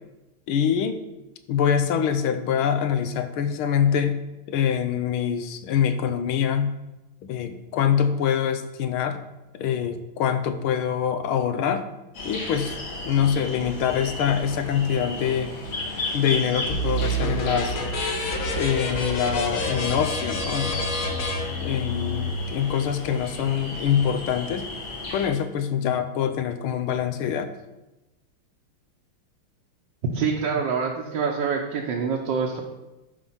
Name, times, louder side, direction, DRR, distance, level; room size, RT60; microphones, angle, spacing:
voice 1, 0.5-1.0 1.5-4.2 4.5-6.7 7.2-9.2 9.5-11.9 12.2-12.8 13.0-15.5 16.1-17.8 18.6-20.9 21.6-24.7 25.1-27.5, left 8 dB, 90° left, 10 dB, 1.6 m, -24 dB
sound 1, 12.1-25.3, left 2 dB, 65° left, 2.7 m, -34 dB
sound 2, 16.7-22.3, equal, 45° left, 1.3 m, -28 dB
voice 2, 30.1-32.6, right 5 dB, 65° right, -2 dB, 1.5 m, -26 dB
10.5 x 5.1 x 5.7 m, 1.0 s
omnidirectional pair, 2.3 m